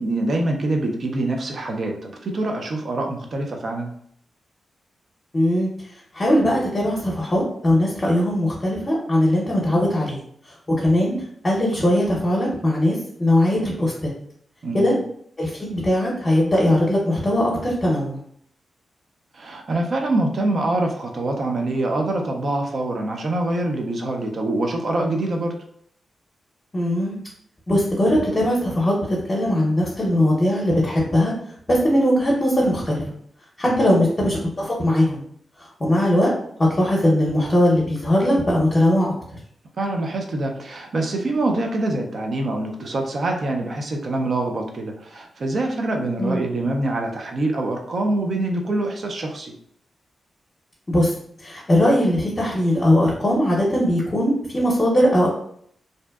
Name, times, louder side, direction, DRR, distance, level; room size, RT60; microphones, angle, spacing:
voice 1, 0.0-3.9 14.6-14.9 19.3-25.6 33.6-33.9 39.8-49.5, right 2 dB, 55° right, 2 dB, 0.4 m, -25 dB
voice 2, 5.3-5.7 6.1-10.2 10.8-11.2 11.4-14.1 14.7-14.9 15.4-18.2 26.7-27.1 27.7-31.3 31.7-33.1 33.6-35.2 35.8-36.3 36.7-39.4 46.2-46.5 50.9-51.1 51.4-55.3, left 1 dB, 25° left, -5 dB, 0.7 m, -20 dB
2.6 x 2.1 x 2.2 m, 0.65 s
cardioid pair, 85°, 0 cm